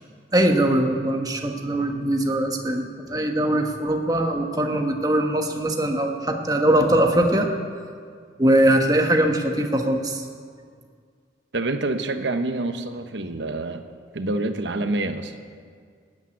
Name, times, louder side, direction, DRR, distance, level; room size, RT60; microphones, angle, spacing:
voice 1, 0.3-7.5 8.4-10.2, right 1 dB, 20° right, 3 dB, 1.2 m, -21 dB
voice 2, 11.5-13.8 14.1-15.3, right 2 dB, 75° right, 8 dB, 1.0 m, -27 dB
13.5 x 9.0 x 9.7 m, 2.1 s
head